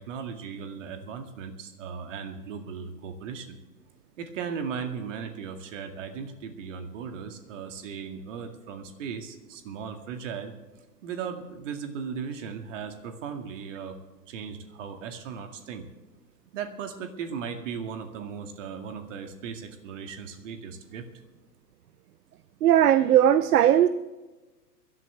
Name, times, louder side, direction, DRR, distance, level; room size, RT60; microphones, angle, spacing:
voice 1, 0.0-3.6 4.2-10.6 11.0-14.0 14.3-15.9 16.5-21.1, right 6 dB, 45° right, 6 dB, 2.2 m, -37 dB
voice 2, 22.6-23.9, right 11 dB, 65° right, 15 dB, 0.7 m, -18 dB
22.5 x 12.5 x 3.4 m, 1.2 s
figure-of-eight pair, 120°, 50 cm